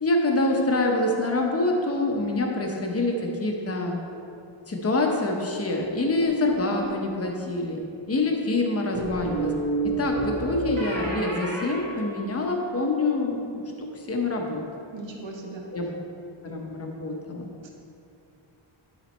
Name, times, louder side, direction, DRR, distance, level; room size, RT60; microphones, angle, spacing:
voice 1, 0.0-4.0 4.7-7.8 8.1-9.5 9.8-14.6 15.7-15.9 16.4-17.5, left 2 dB, 30° left, 1 dB, 0.8 m, -26 dB
sound 1, 6.2-7.0 8.9-12.7, right 3 dB, 90° right, 1.9 m, -31 dB
voice 2, 14.9-15.6 17.6-17.7, right 3 dB, 65° right, 0 dB, 1.2 m, -38 dB
11.5 x 4.1 x 4.3 m, 2.6 s
wide cardioid pair, 170°, 48 cm